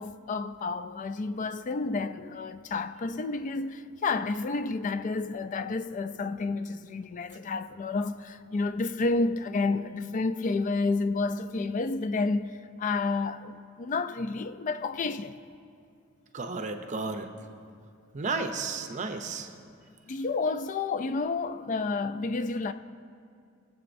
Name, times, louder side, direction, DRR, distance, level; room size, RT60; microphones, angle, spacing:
voice 1, 0.0-12.5 12.8-15.4 20.1-22.7, left 3 dB, 40° left, 0.3 m, -30 dB
voice 2, 16.3-17.3 18.1-19.5, right 3 dB, 40° right, 0.6 m, -33 dB
21.0 x 7.5 x 2.6 m
head